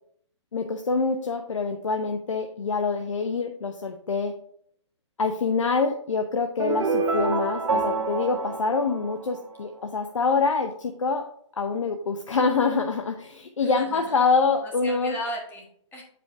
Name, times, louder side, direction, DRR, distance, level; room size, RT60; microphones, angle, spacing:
voice 1, 0.5-4.3 5.2-11.3 11.6-15.1, left 4 dB, 90° left, 5 dB, 0.7 m, -25 dB
sound 1, 6.6-9.7, right 4 dB, 70° right, 1.1 m, -27 dB
voice 2, 13.6-14.2 14.6-16.0, equal, 10° left, 0 dB, 1.6 m, -36 dB
7.8 x 5.1 x 3.5 m, 0.63 s
hypercardioid pair, 145°, 16 cm